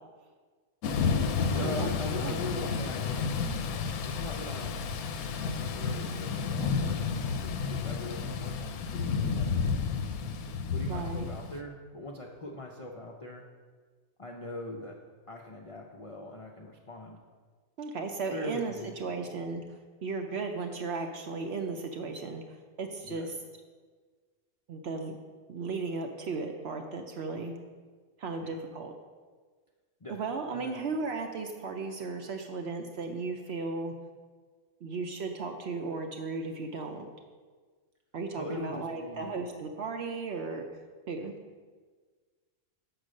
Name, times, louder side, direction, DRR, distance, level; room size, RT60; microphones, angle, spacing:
Thunder / Rain, 0.8-11.6, left 5 dB, 85° left, 1.1 m, -31 dB
voice 1, 1.5-3.3 4.0-4.8 5.4-7.0 7.4-9.8 10.4-13.4 14.2-15.0 15.3-17.2 18.3-19.2 23.0-23.3 28.4-28.6 30.0-30.8 38.4-39.3, left 1 dB, 55° left, -1 dB, 0.3 m, -41 dB
voice 2, 10.9-11.3 17.8-18.7 19.0-19.6 20.0-22.4 22.8-23.3 24.7-25.2 25.5-27.5 28.2-28.9 30.1-33.9 34.8-37.1 38.1-40.7 41.1-41.3, right 4 dB, 60° right, 4 dB, 0.7 m, -35 dB
6.6 x 4.7 x 6.3 m, 1.5 s
omnidirectional pair, 1.5 m